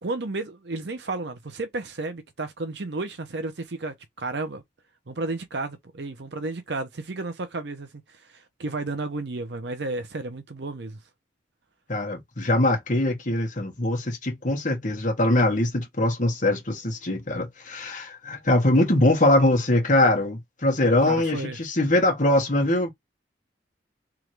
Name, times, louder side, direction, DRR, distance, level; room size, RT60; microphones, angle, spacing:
voice 1, 0.0-4.6 5.1-11.0 21.0-21.6, right 2 dB, 65° right, 0.8 m, -32 dB
voice 2, 11.9-22.9, left 1 dB, 45° left, 1.5 m, -22 dB
3.6 x 3.1 x 3.1 m
head